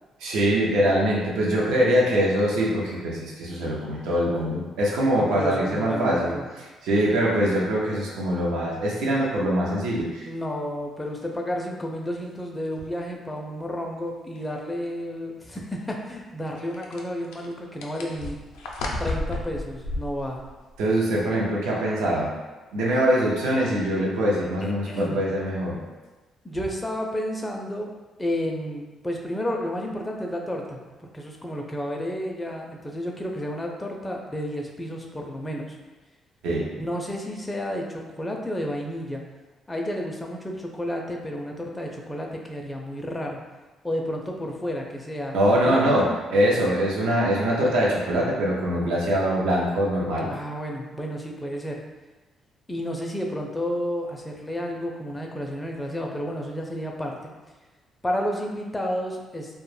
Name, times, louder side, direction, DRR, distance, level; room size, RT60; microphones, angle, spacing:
voice 1, 0.2-6.3 6.6-10.3 20.8-22.3 22.7-25.8 36.4-36.7 45.3-50.3, equal, 85° right, -4 dB, 0.5 m, -23 dB
voice 2, 5.1-6.5 10.2-18.4 19.0-20.4 24.6-25.2 26.4-27.9 28.2-35.8 36.8-39.2 39.7-43.4 43.8-46.2 50.3-51.8 52.7-57.3 58.0-59.6, equal, 15° left, 0 dB, 0.4 m, -31 dB
sound 1, 11.2-11.3 12.1-12.2 12.7-12.8 14.4-14.5 16.6-20.8, left 2 dB, 90° left, 0.3 m, -33 dB
2.1 x 2.0 x 3.1 m, 1.2 s
cardioid pair, 80°, 0 cm